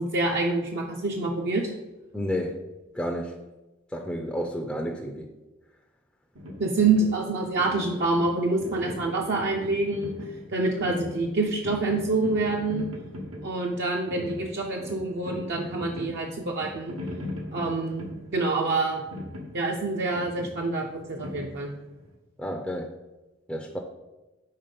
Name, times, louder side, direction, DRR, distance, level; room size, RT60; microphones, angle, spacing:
voice 1, 0.0-1.7 6.6-10.1 10.5-12.9 13.4-17.0 17.5-18.0 18.3-19.0 19.5-21.8, right 3 dB, 55° right, 1 dB, 0.6 m, -26 dB
voice 2, 2.1-2.6 2.9-3.4 3.9-5.3 22.4-22.9 23.5-23.8, equal, 5° left, 1 dB, 0.4 m, -31 dB
sound 1, 6.4-22.1, left 1 dB, 90° right, 1.0 m, -40 dB
5.6 x 4.1 x 5.1 m, 1.1 s
head